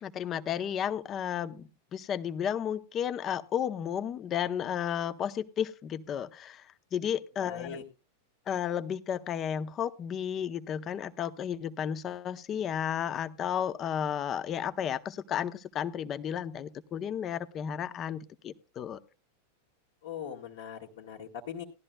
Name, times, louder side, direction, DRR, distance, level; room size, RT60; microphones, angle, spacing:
voice 1, 0.0-6.6 6.9-7.8 8.5-19.0, left 9 dB, 30° left, 14 dB, 0.7 m, -33 dB
voice 2, 7.4-7.8 20.0-21.6, left 8 dB, 55° left, -3 dB, 1.7 m, -40 dB
18.5 x 12.0 x 2.2 m, 0.30 s
figure-of-eight pair, 90°, 0 cm